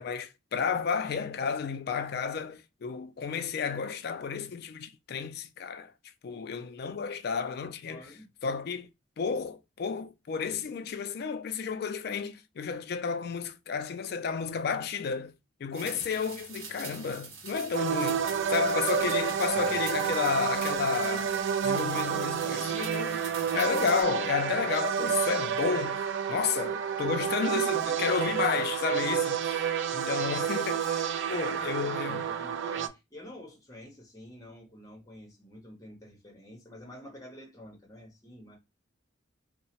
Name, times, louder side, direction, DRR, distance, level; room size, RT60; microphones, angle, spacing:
voice 1, 0.0-5.9 6.2-8.1 8.4-8.9 9.2-15.3 15.6-23.2 23.5-32.3, left 5 dB, 50° left, 0.3 m, -32 dB
voice 2, 7.8-8.3 19.5-19.8 31.3-38.6, left 1 dB, 15° left, 0.9 m, -48 dB
sound 1, 15.7-24.0, right 4 dB, 85° right, 0.9 m, -44 dB
sound 2, 17.7-32.9, right 8 dB, 65° right, 0.3 m, -30 dB
2.7 x 2.1 x 2.8 m
head